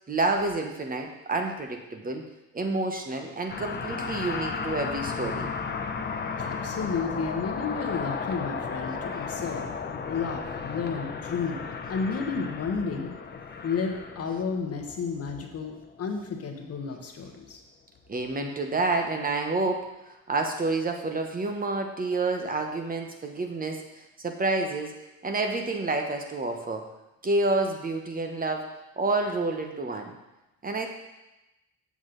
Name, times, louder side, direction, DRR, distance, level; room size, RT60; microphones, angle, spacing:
voice 1, 0.1-2.2 2.5-5.5 18.1-24.9 25.2-26.9 27.2-28.7 29.0-30.1 30.6-30.9, right 2 dB, 30° right, 3 dB, 0.9 m, -29 dB
sound 1, 3.5-16.2, left 5 dB, 35° left, 0.8 m, -34 dB
voice 2, 6.4-9.7 10.0-11.6 11.9-13.1 13.6-17.6, left 5 dB, 50° left, 4 dB, 1.1 m, -32 dB
7.2 x 6.2 x 3.9 m, 0.98 s
cardioid pair, 90°, 30 cm